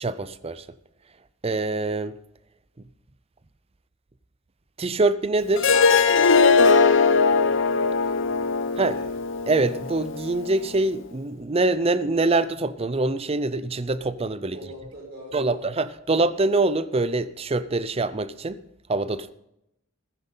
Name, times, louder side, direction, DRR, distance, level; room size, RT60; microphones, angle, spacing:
voice 1, 0.0-0.6 1.4-2.2 4.8-5.8 8.8-9.0 9.5-14.6 15.3-18.6 18.9-19.3, right 2 dB, 30° right, 0.6 m, -24 dB
Harp, 5.6-10.7, left 4 dB, 65° left, 0.8 m, -20 dB
voice 2, 7.3-9.1 14.5-15.6, equal, 55° right, 5.5 m, -44 dB
15.0 x 15.0 x 3.9 m
head